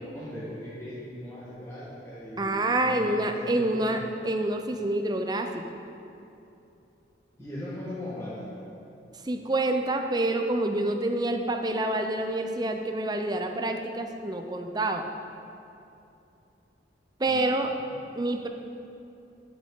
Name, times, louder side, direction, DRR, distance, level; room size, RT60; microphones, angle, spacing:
voice 1, 0.1-4.0 7.4-8.7 17.3-17.7, left 1 dB, 15° left, -9 dB, 1.4 m, -39 dB
voice 2, 2.4-5.6 9.2-15.1 17.2-17.7 18.2-18.5, right 2 dB, 20° right, 5 dB, 0.5 m, -27 dB
14.0 x 6.3 x 3.7 m, 2.7 s
head